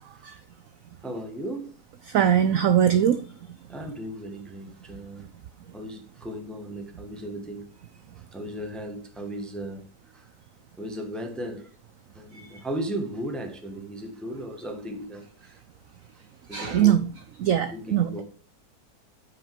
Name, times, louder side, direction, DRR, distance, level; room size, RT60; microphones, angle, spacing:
voice 1, 1.0-1.8 3.7-5.3 5.7-7.7 8.3-10.2 10.8-11.7 12.1-15.6 16.5-17.1 17.7-18.2, right 1 dB, ahead, 0.8 m, -36 dB
voice 2, 2.1-3.2 16.5-17.0 17.4-18.2, right 9 dB, 70° right, 0.8 m, -21 dB
8.5 x 5.2 x 4.5 m
omnidirectional pair, 1.9 m